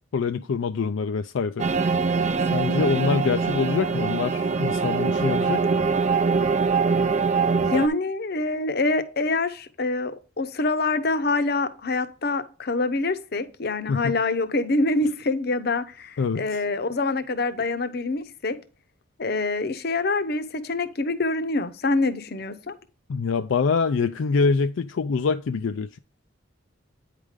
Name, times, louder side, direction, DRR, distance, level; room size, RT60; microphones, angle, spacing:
voice 1, 0.1-1.7 2.5-5.6 13.9-14.1 16.2-16.6 23.1-26.0, left 5 dB, 70° left, 0.4 m, -25 dB
sound 1, 1.6-7.9, right 4 dB, 35° right, 0.5 m, -23 dB
voice 2, 7.7-18.6 19.2-22.7, left 3 dB, 50° left, 0.8 m, -25 dB
9.1 x 5.0 x 3.6 m
head